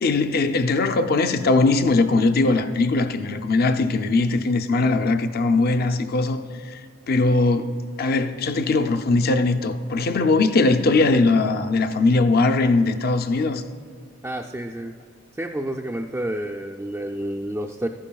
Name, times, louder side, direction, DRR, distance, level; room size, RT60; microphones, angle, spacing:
voice 1, 0.0-6.8 7.1-7.7 8.0-13.6, left 3 dB, 50° left, 0.5 m, -20 dB
voice 2, 14.2-14.9 15.3-17.9, right 1 dB, 10° right, 0.3 m, -29 dB
14.0 x 11.5 x 2.3 m
head